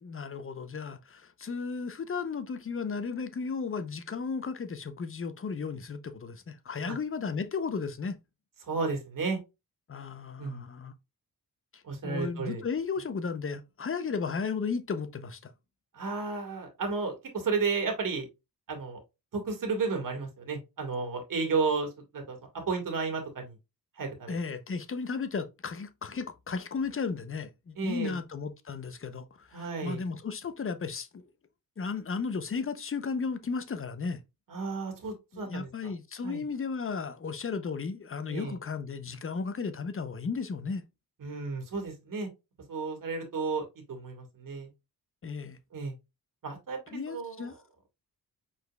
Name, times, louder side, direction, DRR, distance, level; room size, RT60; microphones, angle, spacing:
voice 1, 0.0-8.2 9.9-10.9 11.7-15.5 24.3-31.3 31.8-34.2 35.3-40.8 45.2-45.6 46.9-47.6, left 5 dB, 35° left, 0.7 m, -34 dB
voice 2, 8.6-9.4 10.4-10.6 11.8-12.6 15.9-18.3 18.7-19.0 19.3-22.4 22.7-23.6 24.0-24.3 27.8-28.2 29.5-30.0 34.5-35.9 36.2-36.4 38.3-38.6 41.2-42.3 42.7-44.7 45.7-45.9 46.4-47.5, right 4 dB, 60° right, 1.9 m, -33 dB
5.1 x 4.1 x 2.3 m
cardioid pair, 95°, 36 cm